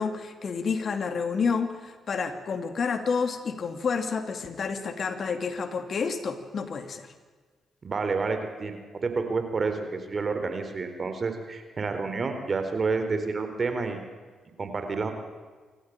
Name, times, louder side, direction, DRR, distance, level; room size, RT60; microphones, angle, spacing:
voice 1, 0.0-7.1, left 5 dB, 55° left, 8 dB, 2.5 m, -29 dB
voice 2, 7.8-14.0 14.6-15.1, right 4 dB, 45° right, 7 dB, 4.1 m, -29 dB
27.5 x 14.5 x 9.0 m, 1.4 s
hypercardioid pair, 45°, 0 cm